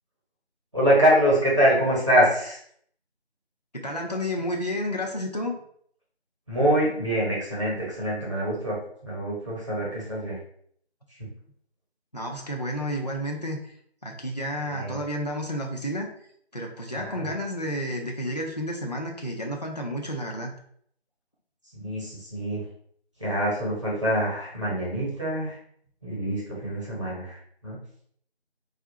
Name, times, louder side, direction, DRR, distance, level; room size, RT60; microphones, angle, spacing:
voice 1, 0.7-2.6 6.5-8.8 9.0-10.4 14.6-14.9 16.9-17.4 21.7-22.6 23.2-25.6 26.0-27.8, equal, 30° right, -6 dB, 1.0 m, -24 dB
voice 2, 3.7-5.5 12.1-13.7 14.0-16.1 16.5-20.6, equal, 40° left, 0 dB, 0.4 m, -31 dB
4.0 x 2.4 x 2.9 m, 0.63 s
figure-of-eight pair, 175°, 32 cm